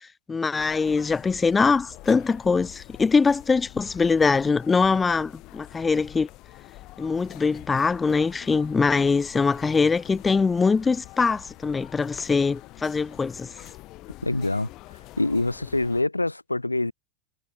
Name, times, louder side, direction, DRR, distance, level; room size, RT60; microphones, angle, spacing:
voice 1, 0.0-6.3 7.0-13.5, left 4 dB, 15° left, 0.5 m, -23 dB
sound 1, 0.6-16.0, left 19 dB, 40° left, 4.4 m, -46 dB
voice 2, 14.2-14.7 15.2-16.9, left 2 dB, 85° left, 2.1 m, -25 dB
figure-of-eight pair, 90°, 0 cm